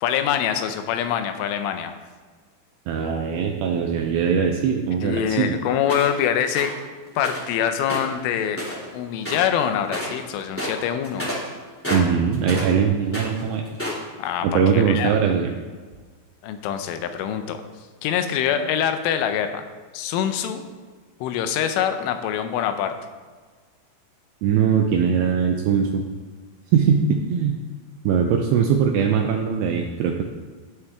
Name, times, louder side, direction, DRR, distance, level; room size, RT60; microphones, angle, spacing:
voice 1, 0.0-2.0 5.0-6.7 7.2-8.6 8.9-11.3 14.2-15.1 16.4-17.6 18.0-19.7 19.9-20.6 21.2-22.9, left 9 dB, 90° left, 8 dB, 3.3 m, -24 dB
voice 2, 2.9-5.6 11.9-13.6 14.4-15.5 24.4-26.0 26.7-27.6 28.0-30.2, right 7 dB, 85° right, 3 dB, 2.4 m, -21 dB
sound 1, 5.9-6.2 6.5-6.8 7.2-7.5 7.8-8.9 9.2-9.6 9.8-10.2 10.5-12.8 13.0-14.1, equal, 10° left, 0.6 m, -30 dB
13.0 x 9.7 x 3.6 m, 1.5 s
omnidirectional pair, 5.5 m